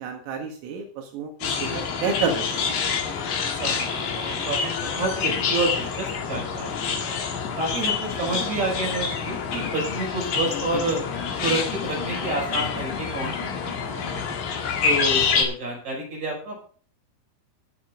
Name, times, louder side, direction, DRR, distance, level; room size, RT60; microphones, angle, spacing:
voice 1, 0.0-2.7, right 5 dB, 80° right, 3 dB, 4.2 m, -30 dB
sound 1, 1.4-15.4, left 5 dB, 55° left, 3.0 m, -27 dB
voice 2, 3.6-7.1 7.6-11.0 11.4-13.9 14.1-14.4 14.8-16.6, right 2 dB, 35° right, -2 dB, 6.4 m, -29 dB
sound 2, 5.0-14.2, left 9 dB, 85° left, 4.2 m, -41 dB
20.5 x 7.5 x 3.8 m, 0.43 s
omnidirectional pair, 6.0 m